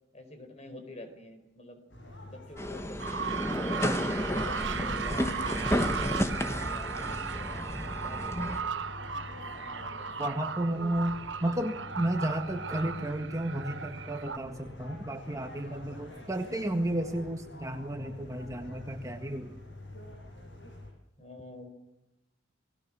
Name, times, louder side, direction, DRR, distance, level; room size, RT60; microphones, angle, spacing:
voice 1, 0.1-1.8 2.2-3.9 4.3-7.5 8.0-8.9 21.2-21.7, left 1 dB, 35° left, 8 dB, 4.5 m, -47 dB
sound 1, 1.9-20.9, left 1 dB, 70° left, 7.6 m, -47 dB
sound 2, 2.6-8.6, equal, 15° left, 1.6 m, -32 dB
sound 3, 3.0-14.4, right 6 dB, 70° right, 1.1 m, -36 dB
voice 2, 10.2-19.6, right 1 dB, 15° right, 4 dB, 1.7 m, -32 dB
29.0 x 20.0 x 6.3 m, 0.96 s
head